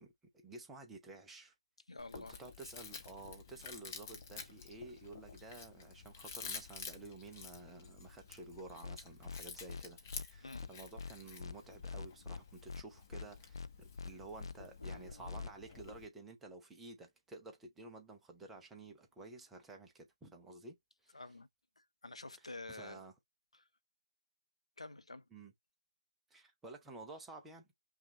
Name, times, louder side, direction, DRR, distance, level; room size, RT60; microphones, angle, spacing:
voice 1, 0.0-1.5 2.1-20.8 21.0-21.4 22.4-23.1 25.3-25.5 26.3-27.7, right 3 dB, 5° right, 0.5 m, -52 dB
voice 2, 1.9-2.4 10.4-10.6 14.8-15.1 21.1-21.5 21.8-23.0 23.5-23.7 24.8-25.2, left 2 dB, 75° left, 0.8 m, -49 dB
Chewing mastication, 2.0-16.1, left 5 dB, 25° left, 0.9 m, -51 dB
sound 1, 8.8-9.0 9.2-9.4 9.7-9.8 10.1-10.3 10.5-10.7 11.0-11.1 11.4-11.5 11.8-12.4 12.7-12.8 13.1-13.3 13.5-13.7 14.0-14.1 14.4-14.5 14.8-15.0 15.2-15.5, left 5 dB, 50° left, 0.4 m, -43 dB
5.6 x 2.4 x 2.8 m
figure-of-eight pair, 160°, 3 cm